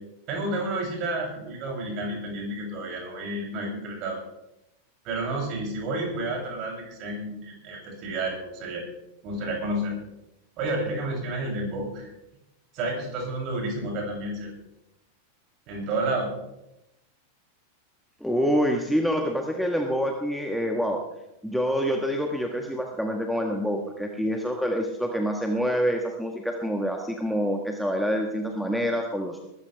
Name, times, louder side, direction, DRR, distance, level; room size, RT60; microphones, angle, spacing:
voice 1, 0.3-4.2 5.0-8.8 9.2-9.9 10.6-12.1 12.7-14.5 15.7-16.3, right 2 dB, 40° right, 0 dB, 7.4 m, -30 dB
voice 2, 18.2-21.0 21.4-29.4, equal, ahead, 3 dB, 1.5 m, -26 dB
21.5 x 14.5 x 3.5 m, 0.86 s
figure-of-eight pair, 90°, 0 cm